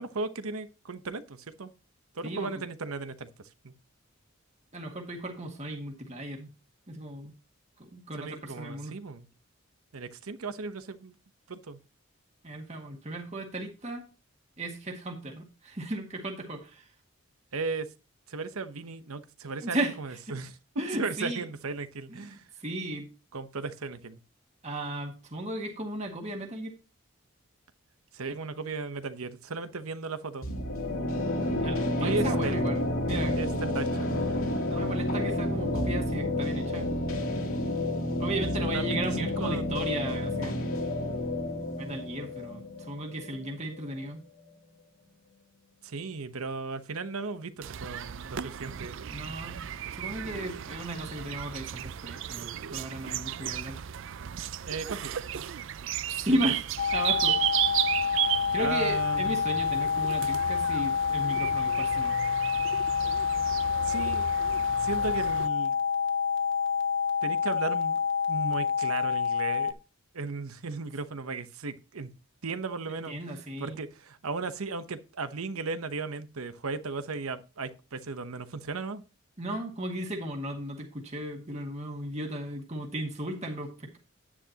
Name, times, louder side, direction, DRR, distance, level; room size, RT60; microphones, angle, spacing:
voice 1, 0.0-1.7 2.1-3.3 3.6-3.7 8.1-9.3 9.9-11.2 11.5-11.8 17.5-17.9 18.3-20.6 21.0-22.4 23.3-24.2 28.1-30.5 32.0-32.6 33.3-34.2 38.7-39.7 45.8-49.0 54.7-55.2 58.6-59.4 63.8-64.4 64.8-65.8 67.2-68.0 68.3-69.8 70.1-72.1 72.4-79.0, right 4 dB, 80° right, 0.9 m, -36 dB
voice 2, 4.7-6.5 6.9-7.3 7.9-9.0 12.4-14.0 14.6-16.8 19.6-19.9 20.3-20.4 20.8-21.4 22.2-23.1 24.6-26.7 31.5-33.4 34.6-36.9 38.2-40.8 41.8-44.2 49.1-49.7 49.9-53.8 56.1-56.7 56.9-57.5 58.5-62.2 73.1-73.8 79.4-84.0, right 1 dB, 30° right, 1.7 m, -35 dB
sound 1, 30.4-44.1, left 1 dB, 70° left, 2.3 m, -30 dB
sound 2, 47.6-65.5, right 11 dB, 60° right, 0.4 m, -34 dB
sound 3, 56.8-69.7, left 6 dB, 55° left, 1.3 m, -28 dB
9.8 x 9.8 x 2.9 m
head